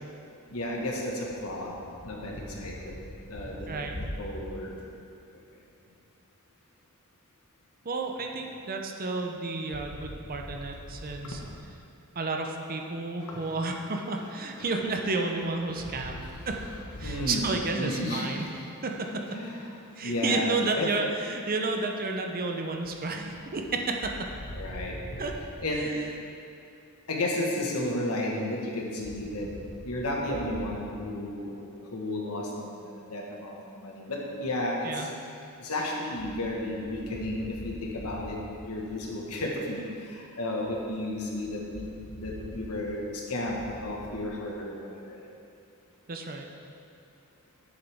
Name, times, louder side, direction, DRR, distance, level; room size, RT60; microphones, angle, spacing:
voice 1, 0.5-1.8 2.0-2.7 3.3-3.7 4.0-4.7 13.3-13.4 15.9-16.1 17.0-18.5 19.3-19.6 20.0-20.9 24.6-24.9 25.6-25.9 27.1-29.5 29.8-31.5 31.9-32.7 33.1-33.5 33.8-35.1 35.6-38.4 38.6-39.8 40.1-41.9 42.2-44.7 45.1-45.2, left 1 dB, 80° left, -2 dB, 1.5 m, -32 dB
voice 2, 7.8-11.4 12.1-16.6 17.0-18.5 18.8-19.2 20.0-24.2 25.2-25.3 25.7-26.0 34.8-35.1 46.1-46.5, right 3 dB, 40° right, 3 dB, 0.7 m, -31 dB
10.0 x 8.0 x 3.6 m, 2.6 s
head